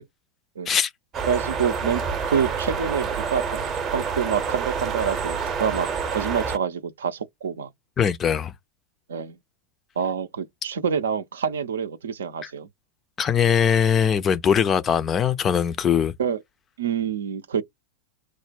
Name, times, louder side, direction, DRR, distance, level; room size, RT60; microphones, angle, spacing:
sound 1, 1.1-6.6, right 6 dB, 30° right, 0.7 m, -28 dB
voice 1, 1.2-3.6 3.9-7.7 9.1-9.4 10.0-12.7 16.2-16.4 16.8-17.6, right 7 dB, 65° right, 0.5 m, -27 dB
voice 2, 8.0-8.5 12.4-12.5 13.2-16.1, left 8 dB, 25° left, 0.4 m, -21 dB
3.1 x 2.1 x 3.4 m
figure-of-eight pair, 90°, 0 cm